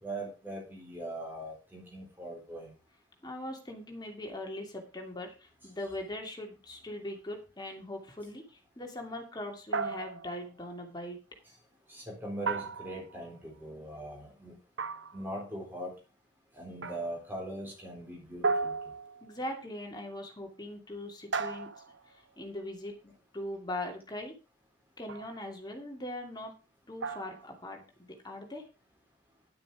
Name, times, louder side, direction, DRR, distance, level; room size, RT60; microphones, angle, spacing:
voice 1, 0.0-2.7 11.9-14.6 15.1-15.9 16.5-18.7, right 1 dB, 10° right, 0 dB, 4.0 m, -40 dB
voice 2, 3.2-11.2 19.2-21.7 22.1-24.3 25.0-26.5 26.9-28.7, left 1 dB, 20° left, 2 dB, 2.5 m, -41 dB
sound 1, 9.7-10.5 12.5-13.3 14.8-15.4 16.8-17.2 18.4-19.4 21.3-22.1 25.1-25.4 27.0-27.5, right 4 dB, 75° right, 0.8 m, -35 dB
10.5 x 9.0 x 4.9 m, 0.33 s
head